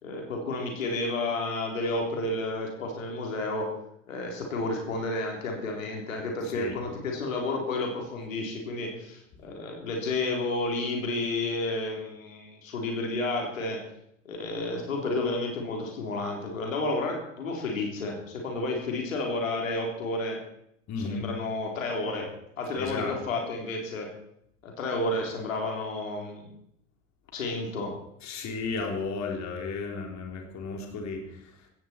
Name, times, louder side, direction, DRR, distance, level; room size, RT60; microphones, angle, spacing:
voice 1, 0.0-3.7 4.1-13.8 14.3-20.4 21.1-22.3 22.6-24.1 24.6-26.5 27.3-27.9, left 2 dB, 80° left, 1 dB, 3.7 m, -31 dB
voice 2, 6.4-6.8 20.9-21.3 22.8-23.2 28.2-31.7, left 4 dB, 45° left, 2 dB, 3.6 m, -34 dB
16.5 x 15.0 x 4.5 m, 0.74 s
figure-of-eight pair, 70°, 39 cm